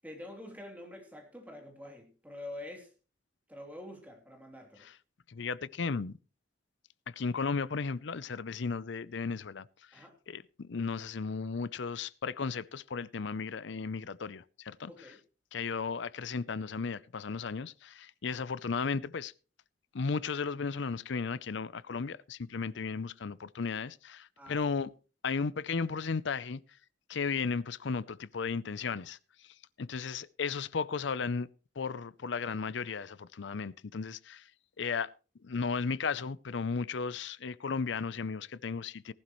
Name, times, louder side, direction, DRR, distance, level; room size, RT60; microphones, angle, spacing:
voice 1, 0.0-2.9 3.5-4.8 9.9-10.1 14.9-15.2 24.4-24.6, left 1 dB, 10° right, 3.0 m, -46 dB
voice 2, 5.3-6.1 7.1-15.1 15.5-19.3 19.9-24.9 25.2-26.6 27.1-31.5 31.8-34.5 34.8-35.1 35.4-39.1, left 5 dB, 60° left, 0.5 m, -35 dB
18.5 x 11.5 x 3.1 m
head